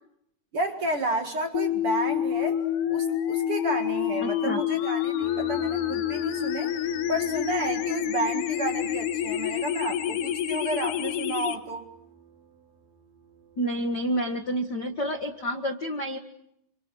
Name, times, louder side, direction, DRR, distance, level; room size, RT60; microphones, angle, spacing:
voice 1, 0.5-2.6 2.9-6.7 7.1-11.9, right 2 dB, 45° right, 5 dB, 2.2 m, -31 dB
sound 1, 1.5-11.6, left 11 dB, 85° left, 3.4 m, -28 dB
voice 2, 4.2-4.6 13.6-16.2, equal, 50° left, 5 dB, 1.3 m, -29 dB
sound 2, 5.2-15.5, right 6 dB, 75° right, 5.0 m, -49 dB
29.0 x 28.0 x 6.3 m, 0.76 s
omnidirectional pair, 4.6 m